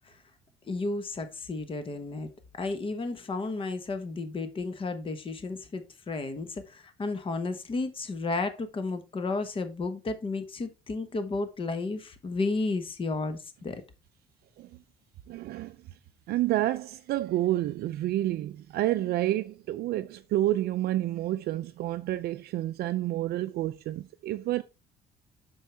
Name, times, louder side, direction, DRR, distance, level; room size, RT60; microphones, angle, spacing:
voice 1, 0.6-13.8, left 3 dB, 30° left, 1.2 m, -33 dB
voice 2, 15.3-15.8 16.3-24.6, right 14 dB, 70° right, 0.5 m, -29 dB
7.5 x 6.4 x 3.4 m
cardioid pair, 110°, 17 cm